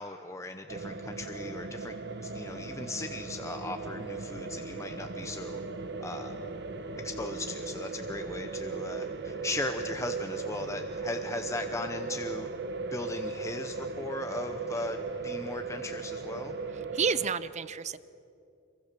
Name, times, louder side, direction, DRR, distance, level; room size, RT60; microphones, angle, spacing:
voice 1, 0.0-5.6 6.0-6.4 7.0-12.5 12.8-16.6, left 2 dB, 15° left, 6 dB, 0.8 m, -38 dB
sound 1, 0.7-17.3, right 4 dB, 60° right, 1.2 m, -37 dB
voice 2, 16.9-18.0, right 6 dB, 35° right, 16 dB, 0.5 m, -30 dB
26.0 x 23.5 x 6.8 m, 2.6 s
head